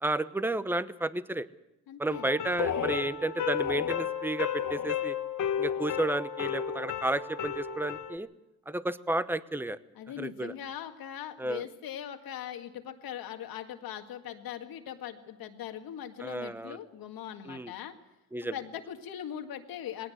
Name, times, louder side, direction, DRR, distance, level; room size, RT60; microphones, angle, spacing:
voice 1, 0.0-1.5 2.0-5.2 5.6-8.3 8.7-9.8 10.2-10.5 11.4-11.6 16.2-16.8 17.5-17.7 18.3-18.5, right 1 dB, 5° right, 14 dB, 0.9 m, -32 dB
voice 2, 1.9-2.3 9.9-18.0 18.5-20.1, left 10 dB, 80° left, 6 dB, 2.0 m, -40 dB
sound 1, 2.1-8.2, left 8 dB, 60° left, 1.5 m, -33 dB
20.0 x 17.5 x 7.9 m, 0.98 s
cardioid pair, 85°, 35 cm